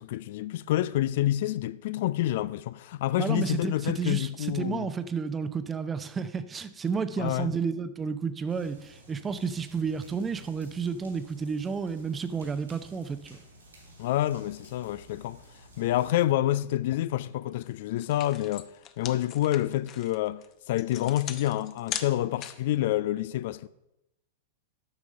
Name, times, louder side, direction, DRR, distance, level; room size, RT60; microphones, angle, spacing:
voice 1, 0.0-4.9 7.2-7.5 14.0-15.4 15.8-18.7 19.0-20.4 20.7-23.7, left 14 dB, 60° left, 0.3 m, -28 dB
voice 2, 3.2-13.4, right 5 dB, 20° right, 0.7 m, -31 dB
sound 1, 8.5-16.1, right 1 dB, 90° right, 3.0 m, -53 dB
sound 2, 17.6-17.7 18.0-22.8, left 10 dB, 35° left, 0.7 m, -39 dB
8.8 x 6.1 x 5.5 m
figure-of-eight pair, 95°, 0 cm